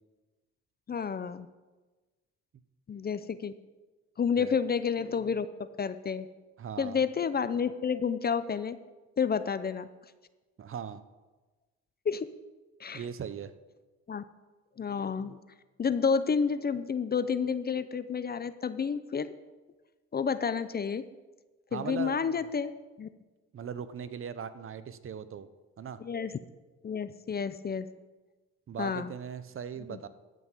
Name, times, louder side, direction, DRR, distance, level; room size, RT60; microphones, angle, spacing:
voice 1, 0.9-1.5 2.9-3.5 4.2-6.3 6.8-8.8 9.2-9.9 12.0-12.3 12.8-13.0 14.1-14.2 14.8-15.4 15.8-19.3 20.1-21.1 21.7-22.7 23.0-23.1 26.0-26.3 26.8-27.9 28.8-29.1 29.9-30.0, left 6 dB, 30° left, 13 dB, 0.6 m, -30 dB
voice 2, 6.6-7.0 10.6-11.0 12.9-13.5 21.7-22.2 23.5-25.5 25.8-26.0 28.7-30.1, right 7 dB, 45° right, 13 dB, 0.8 m, -39 dB
12.5 x 5.7 x 8.1 m, 1.2 s
cardioid pair, 90°, 30 cm